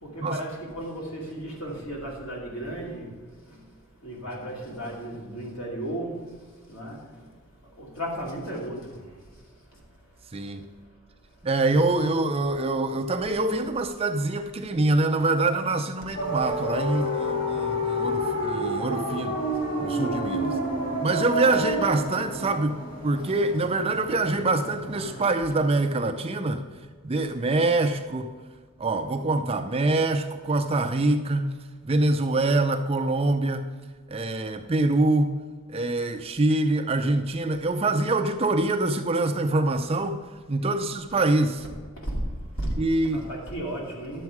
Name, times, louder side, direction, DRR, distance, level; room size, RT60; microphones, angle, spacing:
voice 1, 0.0-3.1 3.4-3.6 4.0-6.3 6.7-7.2 7.6-9.4 9.7-9.8 11.8-12.0 15.2-15.3 20.5-20.6 21.5-21.6 23.2-23.4 25.3-25.5 41.6-41.7 42.0-42.2 42.6-42.7 43.0-44.2, right 1 dB, 65° left, -2 dB, 2.7 m, -35 dB
voice 2, 10.3-10.7 11.4-19.4 19.8-20.6 21.0-22.8 23.0-26.7 27.0-28.3 28.8-31.5 31.8-33.7 34.1-35.4 35.7-41.7 42.8-43.3, right 2 dB, 25° right, 6 dB, 0.5 m, -25 dB
sound 1, 16.1-25.3, equal, 40° left, 2.4 m, -29 dB
11.0 x 7.2 x 4.7 m, 1.5 s
head